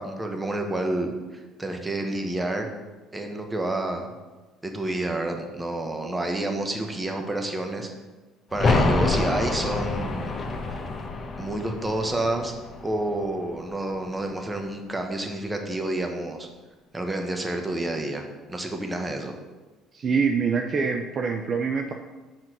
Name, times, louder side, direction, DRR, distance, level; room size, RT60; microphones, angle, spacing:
voice 1, 0.0-2.7 3.1-4.1 4.6-7.9 8.5-10.4 10.7-10.8 11.4-12.5 12.8-16.5 16.9-19.3, right 1 dB, 15° right, 4 dB, 1.2 m, -29 dB
sound 1, 8.5-14.1 14.4-14.5, left 3 dB, 40° left, 1.1 m, -27 dB
voice 2, 19.9-21.9, right 5 dB, 45° right, 4 dB, 0.6 m, -25 dB
6.1 x 4.3 x 6.1 m, 1.2 s
supercardioid pair, 70°, 0 cm